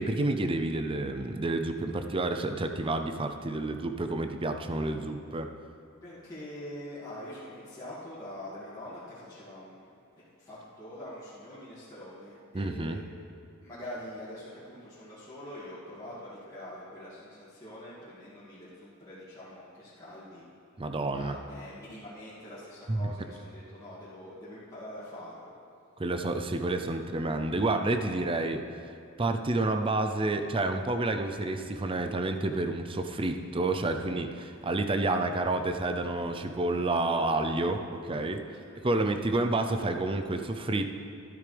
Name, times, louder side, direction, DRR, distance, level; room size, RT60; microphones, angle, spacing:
voice 1, 0.0-5.5 12.5-13.0 20.8-21.4 22.9-23.1 26.0-28.6 29.2-38.4 38.8-40.9, right 2 dB, 25° right, 6 dB, 0.6 m, -29 dB
voice 2, 6.0-9.9 10.4-13.0 13.6-20.4 21.1-25.5 34.4-34.8 38.4-38.9, left 1 dB, 20° left, -12 dB, 2.5 m, -44 dB
13.0 x 12.0 x 3.4 m, 2.5 s
head